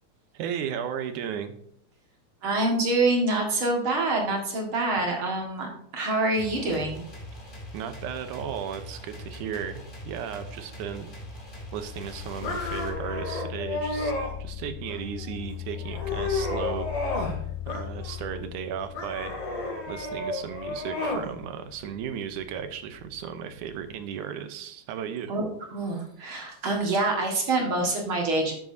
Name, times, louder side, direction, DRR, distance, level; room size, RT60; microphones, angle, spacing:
voice 1, 0.3-1.6 7.7-11.1 11.7-14.1 14.4-17.2 17.7-19.3 19.9-25.3, right 8 dB, 75° right, 9 dB, 2.1 m, -35 dB
voice 2, 2.4-7.0 25.3-28.5, right 2 dB, 45° right, 0 dB, 2.0 m, -26 dB
sound 1, 6.3-12.9, left 1 dB, 20° left, 1.5 m, -42 dB
sound 2, 11.4-24.1, left 12 dB, 60° left, 2.4 m, -39 dB
sound 3, 12.4-14.3 14.9-15.4 15.8-17.4 17.7-18.4 18.9-21.3, left 2 dB, 90° left, 3.9 m, -32 dB
12.5 x 7.3 x 2.7 m, 0.71 s
omnidirectional pair, 4.0 m